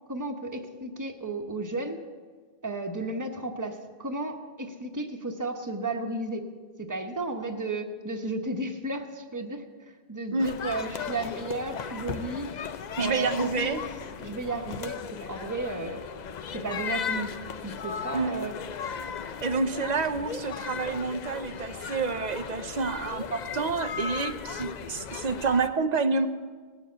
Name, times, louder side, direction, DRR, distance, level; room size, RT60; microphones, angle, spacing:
voice 1, 0.1-2.0 2.6-6.5 6.8-12.5 13.0-13.8 14.2-16.1 16.5-17.3 17.6-18.5, right 2 dB, 20° right, 4 dB, 1.0 m, -33 dB
sound 1, 10.4-25.7, left 7 dB, 50° left, 0.6 m, -37 dB
voice 2, 13.0-13.8 18.1-18.3 19.4-26.3, right 4 dB, 45° right, 10 dB, 0.7 m, -28 dB
18.5 x 7.2 x 7.4 m, 1.5 s
omnidirectional pair, 1.1 m